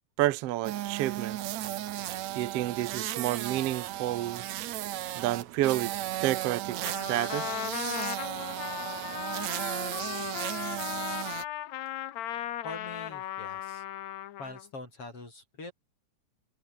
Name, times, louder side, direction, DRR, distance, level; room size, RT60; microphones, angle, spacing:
voice 1, 0.2-1.6 2.3-4.4 5.1-5.9 6.2-6.8 7.1-7.7, right 15 dB, 85° right, 1.3 m, -30 dB
sound 1, 0.6-11.4, right 13 dB, 65° right, 2.0 m, -35 dB
Trumpet, 6.8-14.7, left 13 dB, 65° left, 2.0 m, -37 dB
voice 2, 12.6-13.8 14.4-15.7, left 2 dB, 40° left, 8.1 m, -43 dB
omnidirectional pair, 4.0 m